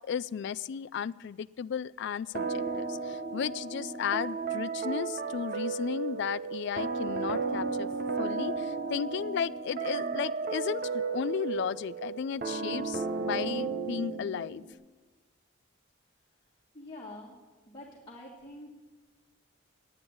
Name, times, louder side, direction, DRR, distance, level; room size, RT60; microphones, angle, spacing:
voice 1, 0.1-7.9 8.2-14.6, left 7 dB, 60° left, 16 dB, 0.3 m, -34 dB
sound 1, 2.4-14.7, right 4 dB, 50° right, 0.9 m, -34 dB
voice 2, 16.7-17.3 17.7-18.7, left 1 dB, 25° left, -5 dB, 1.8 m, -46 dB
9.7 x 9.4 x 8.5 m, 1.3 s
head